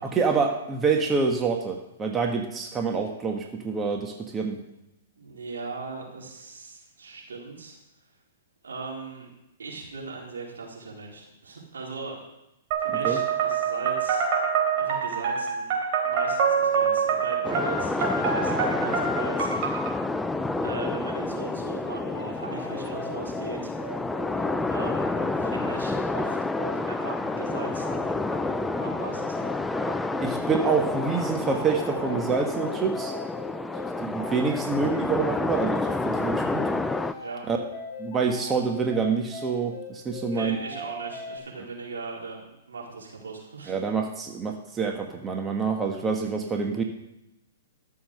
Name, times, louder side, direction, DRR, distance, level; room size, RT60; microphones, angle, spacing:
voice 1, 0.0-4.6 13.0-13.2 30.2-33.1 34.0-36.7 37.5-37.6 38.0-40.6 43.7-46.8, right 5 dB, 20° right, 2 dB, 1.5 m, -27 dB
voice 2, 5.2-7.8 8.6-9.3 9.6-12.2 12.8-14.3 14.7-15.8 16.0-20.2 20.6-23.7 24.7-29.5 37.2-37.4 40.3-42.4 42.7-43.7, right 4 dB, 85° right, -2 dB, 4.2 m, -39 dB
sound 1, 12.7-19.9, right 6 dB, 45° right, 4.0 m, -26 dB
sound 2, 17.4-37.1, left 2 dB, 5° left, 0.5 m, -29 dB
sound 3, 22.0-41.4, left 4 dB, 25° left, 3.8 m, -39 dB
13.0 x 7.1 x 6.7 m, 0.89 s
hypercardioid pair, 125°, 0 cm